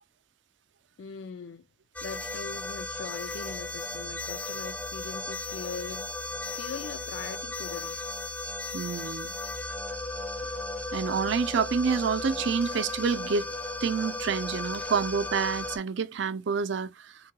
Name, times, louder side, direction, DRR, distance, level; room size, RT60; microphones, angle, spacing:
voice 1, 1.0-1.7 2.0-6.1 6.5-8.0, left 5 dB, 70° left, 0.4 m, -41 dB
sound 1, 1.9-15.8, left 2 dB, 10° left, 0.4 m, -35 dB
voice 2, 8.7-9.3 10.9-13.5 13.8-17.2, right 5 dB, 70° right, 0.5 m, -28 dB
3.6 x 2.2 x 2.9 m
head